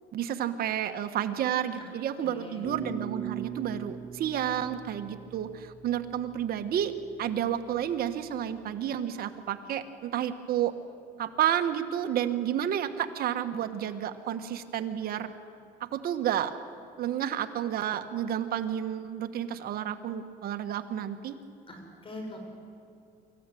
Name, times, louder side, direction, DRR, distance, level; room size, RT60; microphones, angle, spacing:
voice 1, 0.1-6.9 7.2-10.7 11.2-15.3 15.8-16.5 17.0-21.3, right 10 dB, 65° right, 8 dB, 1.5 m, -31 dB
voice 2, 2.2-2.7 21.7-22.4, left 1 dB, 30° left, 2 dB, 5.7 m, -43 dB
sound 1, 2.6-5.6, right 6 dB, 10° left, 7.6 m, -38 dB
25.0 x 14.5 x 9.3 m, 2.7 s
cardioid pair, 110°, 17 cm